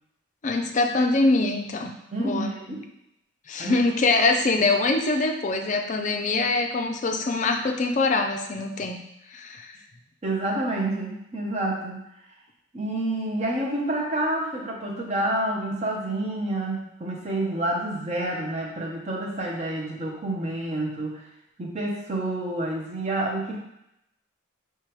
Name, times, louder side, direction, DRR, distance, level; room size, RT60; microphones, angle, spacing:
voice 1, 0.4-1.9 2.2-2.5 3.5-9.0 9.3-9.7, left 3 dB, 40° left, 4 dB, 0.4 m, -23 dB
voice 2, 2.1-2.9 3.6-3.8 10.2-12.0 12.7-21.2 21.6-23.6, right 1 dB, 35° right, -2 dB, 0.8 m, -28 dB
4.7 x 3.3 x 3.0 m, 0.83 s
head